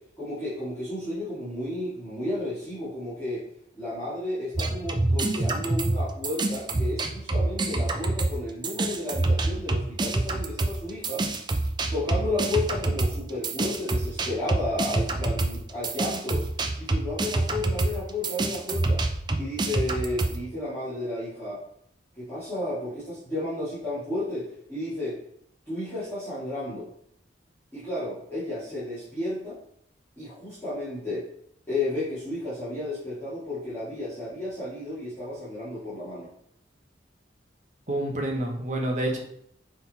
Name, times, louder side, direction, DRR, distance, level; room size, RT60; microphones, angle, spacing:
voice 1, 0.2-3.4 3.7-11.3 11.9-16.5 16.8-19.0 19.3-21.6 22.1-25.2 25.7-26.9 27.7-29.6 30.2-31.2 31.7-36.3, left 1 dB, 10° left, -14 dB, 2.5 m, -32 dB
sound 1, 4.6-8.4 8.6-20.4, right 2 dB, 25° right, 0.5 m, -26 dB
voice 2, 37.9-39.2, right 1 dB, 40° right, 1 dB, 1.3 m, -28 dB
6.5 x 3.9 x 4.3 m, 0.72 s
head